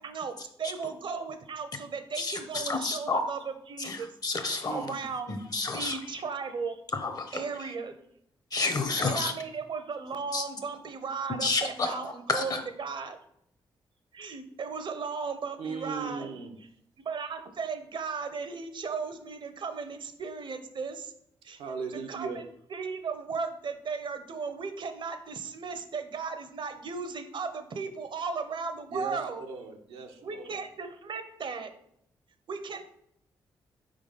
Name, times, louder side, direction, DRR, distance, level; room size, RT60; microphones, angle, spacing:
voice 1, 0.0-4.1 4.7-5.4 5.7-6.8 7.3-8.0 9.1-13.2 14.1-16.3 17.0-21.1 21.4-21.6 21.9-29.4 30.2-31.7 32.5-32.8, right 5 dB, 60° right, 9 dB, 0.7 m, -36 dB
voice 2, 2.2-3.2 3.8-4.9 5.3-6.0 7.0-7.4 8.5-9.3 10.3-10.4 11.3-11.9 12.3-12.6, left 3 dB, 45° left, 7 dB, 1.0 m, -30 dB
voice 3, 4.6-5.0 15.6-16.5 21.6-22.4 28.9-30.6, right 5 dB, 90° right, 3 dB, 0.8 m, -37 dB
4.7 x 3.8 x 5.3 m, 0.71 s
cardioid pair, 60°, 9 cm